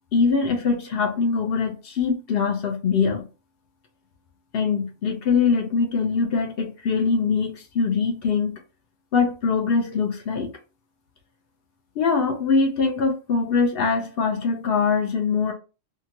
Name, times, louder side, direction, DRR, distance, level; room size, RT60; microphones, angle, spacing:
voice 1, 0.1-3.2 4.5-8.6 9.1-10.5 12.0-15.5, left 5 dB, 60° left, 0.7 m, -22 dB
2.8 x 2.2 x 2.8 m
omnidirectional pair, 1.3 m